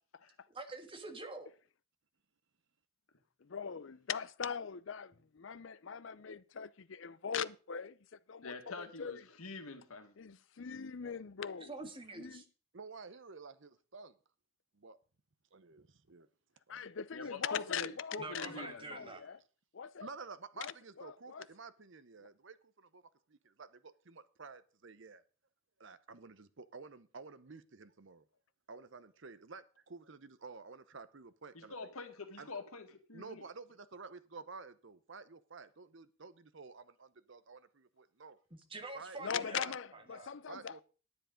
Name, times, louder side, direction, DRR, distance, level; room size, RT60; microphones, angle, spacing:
voice 1, 0.5-1.5 11.6-12.4 18.2-19.2 38.7-39.7 39.9-40.3, right 3 dB, 25° right, 1.6 m, -46 dB
voice 2, 3.4-8.0 8.3-9.2 10.2-11.7 12.1-12.4 16.7-19.4 19.7-20.1 20.6-21.4 39.2-40.8, left 7 dB, 60° left, 0.5 m, -41 dB
voice 3, 8.4-10.1 17.1-19.1 31.5-33.4, left 3 dB, 85° left, 1.8 m, -46 dB
voice 4, 12.7-14.2 14.7-15.0 15.5-16.3 16.7-16.8 18.3-18.7 20.0-23.0 23.3-25.2 25.8-28.3 28.7-31.7 32.4-32.5 33.1-38.4 38.9-39.7 40.5-40.8, right 4 dB, 60° right, 0.8 m, -51 dB
10.5 x 9.7 x 5.1 m
head